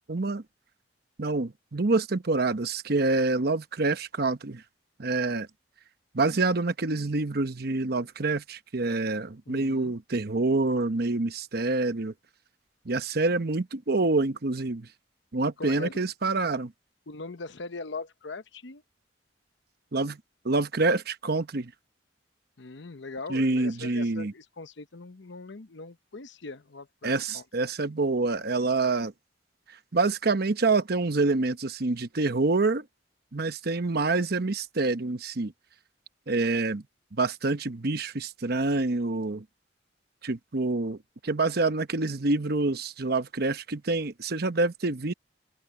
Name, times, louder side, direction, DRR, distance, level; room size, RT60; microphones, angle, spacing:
voice 1, 0.1-0.4 1.2-4.6 5.0-5.5 6.1-12.1 12.8-14.9 15.3-16.7 19.9-20.2 20.4-21.7 23.3-24.3 27.0-29.1 29.9-32.8 33.3-35.5 36.3-36.8 37.1-39.4 40.2-41.0 41.2-45.1, right 3 dB, 55° right, 1.0 m, -27 dB
voice 2, 9.5-9.9 15.6-15.9 17.1-18.8 22.6-27.4, left 3 dB, 70° left, 0.9 m, -41 dB
head